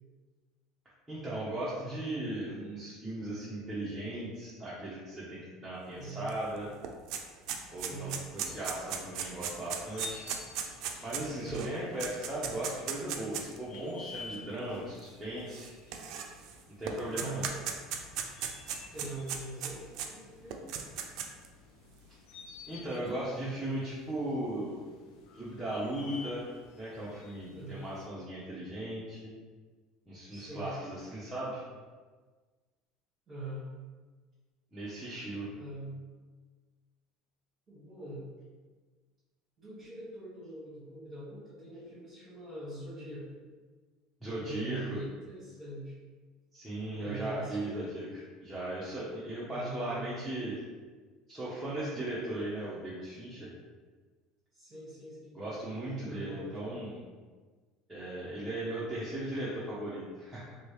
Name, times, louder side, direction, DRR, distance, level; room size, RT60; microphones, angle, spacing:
voice 1, 1.1-6.7 7.7-10.2 11.0-15.7 16.8-17.4 22.7-24.8 25.3-26.5 26.8-29.3 30.1-31.6 34.7-35.5 44.2-45.0 46.5-48.1 48.4-50.5 51.3-53.5 55.3-57.0 57.9-60.5, right 1 dB, 5° right, -10 dB, 0.7 m, -37 dB
voice 2, 5.9-6.3 7.8-8.2 11.2-11.7 17.1-17.5 18.7-20.7 27.5-27.8 30.3-30.7 33.3-33.7 35.6-36.0 37.7-38.2 39.6-43.3 44.4-45.9 46.9-48.0 49.5-50.4 54.5-55.4 56.0-56.8, right 2 dB, 30° right, -10 dB, 1.1 m, -43 dB
sound 1, 6.3-6.4 6.6-13.6 14.3-14.4 15.5-16.5 16.9-20.1 20.5-21.5, right 8 dB, 60° right, 0.4 m, -36 dB
sound 2, 8.4-28.1, left 4 dB, 75° left, 0.5 m, -52 dB
3.0 x 2.7 x 3.1 m, 1.4 s
cardioid pair, 135°, 0 cm